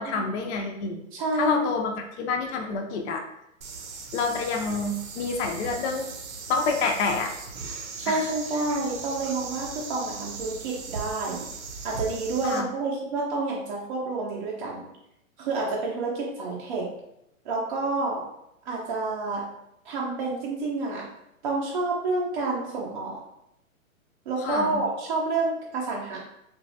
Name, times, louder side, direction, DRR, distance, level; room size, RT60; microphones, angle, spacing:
voice 1, 0.0-1.0 1.3-3.2 4.1-6.1 6.5-7.3 8.1-8.2 12.4-12.7 24.4-24.8, left 4 dB, 55° left, 2 dB, 0.5 m, -28 dB
voice 2, 1.1-1.7 8.0-11.5 11.8-14.8 15.4-16.9 17.5-18.2 18.7-19.4 19.8-21.1 21.4-23.2 24.3-26.2, right 3 dB, 35° right, -4 dB, 0.4 m, -29 dB
sound 1, 3.6-12.6, right 4 dB, 75° right, 0.7 m, -38 dB
3.0 x 2.3 x 2.6 m, 0.80 s
hypercardioid pair, 145°, 41 cm